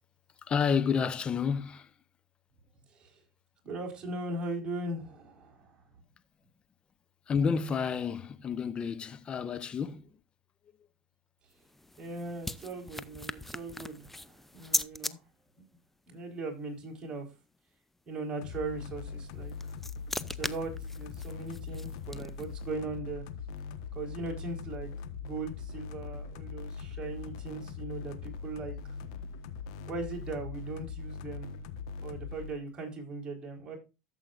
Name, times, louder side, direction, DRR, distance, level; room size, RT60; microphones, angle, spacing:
voice 1, 0.4-1.9 7.3-10.1, left 6 dB, 30° left, 0.9 m, -30 dB
voice 2, 3.6-5.8 12.0-15.2 16.1-17.3 18.1-19.5 20.3-23.2 23.9-28.7 29.9-31.5 32.0-33.8, right 3 dB, 30° right, 4.4 m, -39 dB
sound 1, 11.5-15.1 19.3-22.6, left 1 dB, 5° left, 0.6 m, -38 dB
sound 2, 18.4-32.5, left 5 dB, 75° left, 1.3 m, -41 dB
13.0 x 7.6 x 2.5 m
supercardioid pair, 105°, 3 cm